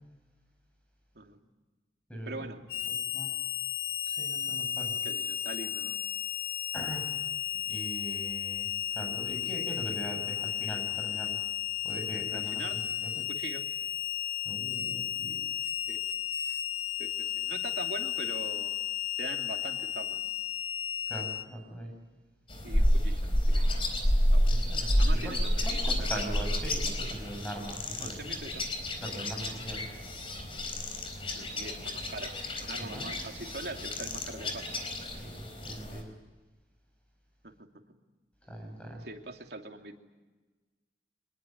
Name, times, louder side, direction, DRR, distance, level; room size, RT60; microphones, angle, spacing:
voice 1, 1.1-1.5 2.2-2.6 5.0-6.0 12.3-12.8 13.1-13.6 15.9-16.0 17.0-18.8 19.2-20.2 22.6-23.7 24.3-26.1 28.0-28.7 31.3-34.7 37.4-37.8 39.0-40.0, right 2 dB, 70° right, 3 dB, 2.9 m, -43 dB
voice 2, 2.1-2.5 2.8-3.4 4.0-4.9 6.7-7.1 7.7-11.4 11.8-13.1 14.4-15.4 21.1-21.9 24.5-28.2 29.0-29.9 32.8-33.1 35.1-36.1 38.5-39.0, right 1 dB, 5° left, 1 dB, 7.9 m, -41 dB
Harmonica, 2.7-21.4, left 10 dB, 60° left, 1.5 m, -34 dB
sound 1, 22.5-36.0, equal, 30° left, 4.2 m, -30 dB
25.5 x 21.0 x 9.4 m, 1.2 s
head